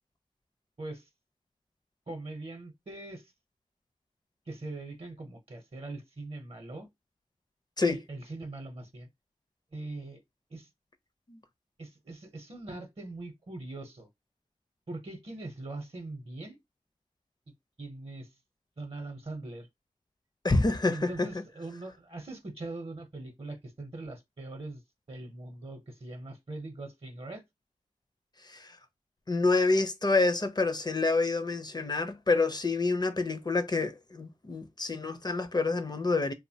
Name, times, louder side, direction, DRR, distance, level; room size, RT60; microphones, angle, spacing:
voice 1, 0.8-1.1 2.1-3.3 4.5-6.9 7.9-9.1 9.7-10.2 10.5-10.7 11.8-14.1 14.9-16.6 17.8-18.3 18.8-19.7 20.9-24.8 25.1-27.4, right 2 dB, 45° right, 0.7 m, -41 dB
voice 2, 20.4-21.3 28.5-28.8 29.3-36.3, left 3 dB, 30° left, 0.5 m, -27 dB
2.8 x 2.0 x 2.7 m
cardioid pair, 45°, 14 cm